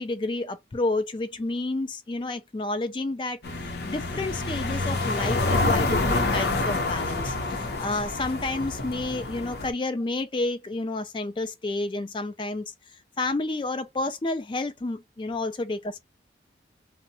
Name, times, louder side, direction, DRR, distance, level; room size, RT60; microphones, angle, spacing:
voice 1, 0.0-3.4 3.8-12.6 13.2-16.0, left 2 dB, 25° left, 0.3 m, -30 dB
sound 1, 3.4-9.7, left 2 dB, 65° left, 0.7 m, -27 dB
2.7 x 2.1 x 2.6 m
head